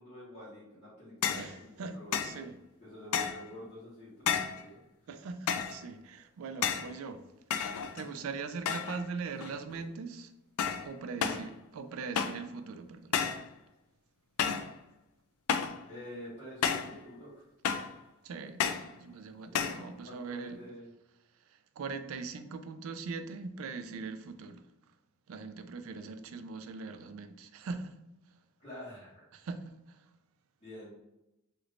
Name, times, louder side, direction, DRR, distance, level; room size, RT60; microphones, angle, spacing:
voice 1, 0.0-2.1 2.8-4.8 15.9-17.5 19.5-19.7 20.0-20.9 28.6-29.3 30.6-30.9, equal, 30° left, 1.4 m, -47 dB
sound 1, 1.2-1.5 2.1-2.4 3.1-3.5 4.3-4.6 5.5-5.8 6.6-6.9 7.5-8.2 8.7-9.0 9.4-9.8 10.6-10.9 11.2-11.5 12.2-12.5 13.1-13.5 14.4-14.7 15.5-15.8 16.6-17.0 17.6-18.0 18.6-18.9 19.5-19.8, left 7 dB, 90° left, 0.3 m, -31 dB
voice 2, 1.3-2.6 5.1-7.2 7.7-10.3 10.8-13.2 18.2-18.6 19.0-20.6 21.5-24.6 25.3-28.0 29.3-30.0, right 4 dB, 75° right, 0.3 m, -41 dB
3.1 x 3.0 x 2.4 m
head